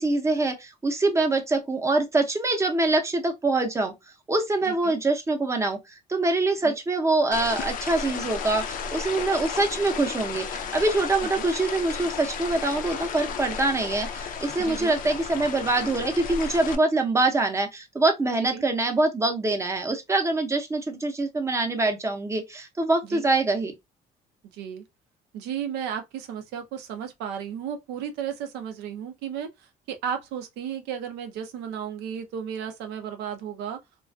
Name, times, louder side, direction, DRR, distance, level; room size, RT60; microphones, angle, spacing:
voice 1, 0.0-3.9 4.3-5.8 6.1-23.7, right 2 dB, 15° right, 0.6 m, -24 dB
sound 1, 7.3-16.8, left 6 dB, 55° left, 0.4 m, -33 dB
voice 2, 14.6-14.9 18.4-18.6 23.0-23.3 24.5-24.8 25.3-33.8, right 8 dB, 85° right, 0.5 m, -34 dB
2.4 x 2.2 x 2.2 m
cardioid pair, 110°, 17 cm